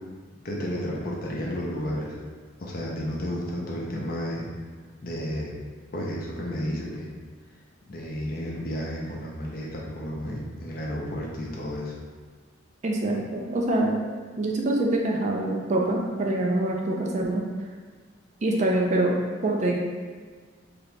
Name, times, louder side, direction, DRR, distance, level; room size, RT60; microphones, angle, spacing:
voice 1, 0.4-2.1 2.6-4.5 5.0-5.5 5.9-7.1 7.9-12.0, equal, 45° left, -3 dB, 0.6 m, -32 dB
voice 2, 12.8-14.0 14.4-17.4 18.4-19.2 19.4-19.8, right 1 dB, 35° right, -1 dB, 0.3 m, -25 dB
2.9 x 2.6 x 3.2 m, 1.5 s
head